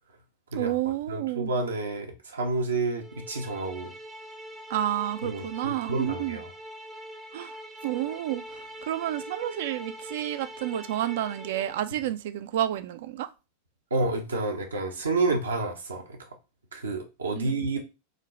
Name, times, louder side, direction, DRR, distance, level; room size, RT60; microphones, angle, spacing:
voice 1, 0.6-1.5 4.7-6.4 7.3-7.6 7.8-13.3 17.4-17.6, right 13 dB, 55° right, 0.4 m, -30 dB
voice 2, 1.1-3.9 5.2-6.5 13.9-16.3 16.7-17.8, right 3 dB, 70° right, 0.7 m, -29 dB
sound 1, 3.0-11.8, equal, 10° right, 0.6 m, -43 dB
3.2 x 2.2 x 3.8 m
figure-of-eight pair, 90°, 0 cm